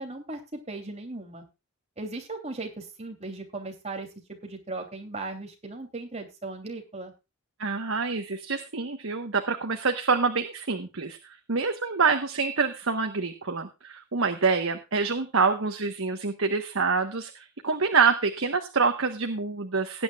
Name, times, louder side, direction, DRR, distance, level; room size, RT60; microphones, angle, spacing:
voice 1, 0.0-1.4 2.0-4.1 4.4-7.1, right 2 dB, 30° right, 3 dB, 3.0 m, -37 dB
voice 2, 7.6-11.2 11.5-20.0, right 4 dB, 70° right, 6 dB, 1.2 m, -26 dB
19.0 x 9.7 x 2.4 m, 0.27 s
head